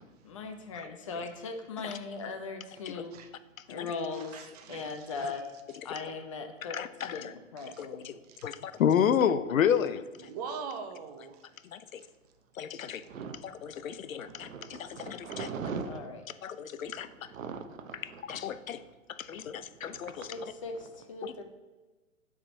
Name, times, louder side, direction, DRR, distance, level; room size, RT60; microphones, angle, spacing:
voice 1, 0.2-3.1 3.7-5.4 5.8-6.8 7.0-8.1 15.9-16.2 20.3-21.4, left 4 dB, 25° left, 0.4 m, -39 dB
voice 2, 4.1-5.3 7.6-7.8 8.3-8.5 10.2-11.4, right 5 dB, 30° right, 0.6 m, -42 dB
voice 3, 6.7-7.3 7.8-8.1 8.4-10.0 11.7-12.0 12.6-13.0 13.6-15.5 16.4-17.1 18.3-18.8 19.2-20.3 21.2-21.3, left 8 dB, 85° left, 0.6 m, -30 dB
voice 4, 13.1-13.4 14.3-16.1 17.3-18.5 19.8-20.0 20.4-20.5, right 5 dB, 75° right, 0.8 m, -40 dB
6.6 x 3.6 x 4.0 m
hypercardioid pair, 125°, 39 cm